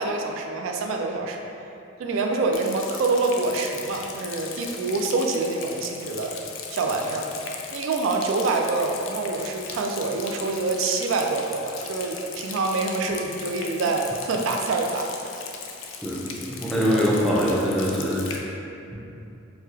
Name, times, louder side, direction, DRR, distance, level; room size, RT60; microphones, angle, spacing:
voice 1, 0.0-1.4 2.0-6.3 6.7-7.3 7.7-15.1, right 3 dB, 90° right, 2 dB, 0.3 m, -26 dB
Rain, 2.5-18.4, left 6 dB, 80° left, 0.3 m, -38 dB
voice 2, 16.0-18.5, equal, ahead, -5 dB, 0.3 m, -23 dB
4.2 x 2.3 x 2.3 m, 2.7 s
head